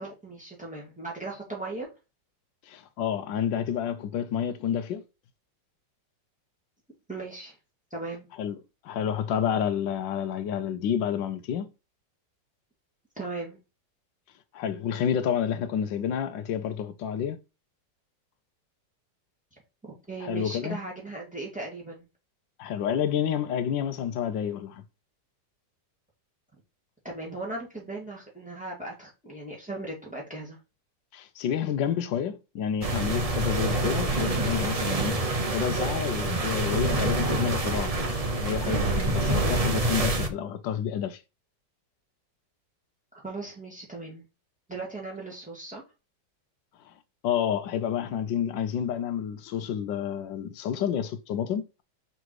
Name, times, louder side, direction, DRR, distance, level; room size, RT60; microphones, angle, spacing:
voice 1, 0.0-1.9 7.1-7.5 7.9-8.3 13.2-13.6 19.8-22.1 27.0-30.6 43.1-44.2 44.7-45.8, right 2 dB, 5° right, 2.3 m, -37 dB
voice 2, 2.7-5.0 8.4-8.6 8.8-11.7 14.5-17.4 20.2-20.8 22.6-24.8 31.1-35.2 35.5-37.9 38.4-41.2 47.2-51.8, left 8 dB, 90° left, 1.4 m, -29 dB
sound 1, 32.8-40.3, right 2 dB, 40° right, 0.5 m, -27 dB
5.6 x 4.0 x 4.7 m
omnidirectional pair, 1.9 m